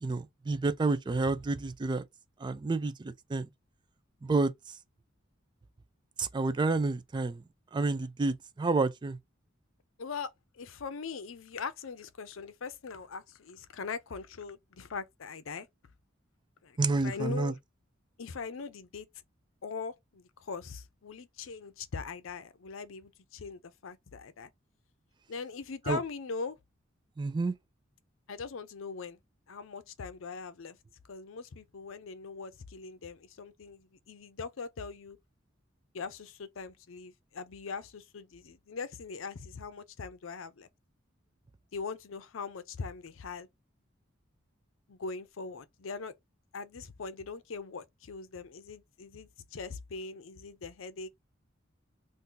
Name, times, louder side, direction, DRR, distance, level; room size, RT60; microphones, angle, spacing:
voice 1, 0.0-2.0 2.4-3.5 4.2-4.8 6.2-7.4 7.7-9.2 16.8-17.5 25.9-26.0 27.2-27.5, right 3 dB, 20° right, 0.3 m, -29 dB
voice 2, 10.0-15.7 16.6-17.6 18.2-19.1 19.6-24.5 25.3-26.6 28.3-29.2 29.5-30.8 31.1-35.2 35.9-40.7 41.7-43.5 44.9-46.1 46.5-51.1, left 5 dB, 70° left, 0.6 m, -41 dB
2.7 x 2.5 x 3.7 m
head